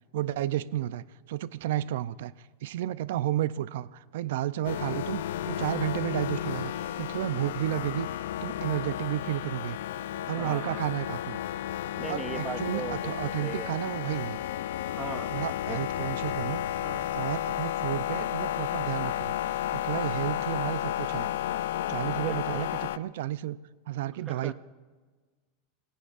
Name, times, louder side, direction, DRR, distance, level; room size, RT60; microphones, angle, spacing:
voice 1, 0.1-2.3 2.6-8.1 8.4-9.8 10.3-11.4 12.1-14.4 15.1-16.6 17.1-19.3 19.7-21.3 21.9-23.6 23.9-24.5, right 13 dB, 70° right, 17 dB, 0.5 m, -32 dB
sound 1, 4.6-23.0, left 12 dB, 80° left, 0.4 m, -32 dB
voice 2, 10.4-10.9 12.0-13.8 15.0-15.3 15.7-15.8 16.6-17.2 22.1-22.7 24.3-24.5, right 6 dB, 15° right, 12 dB, 0.5 m, -39 dB
26.5 x 18.0 x 2.5 m, 1.4 s
supercardioid pair, 165°, 0 cm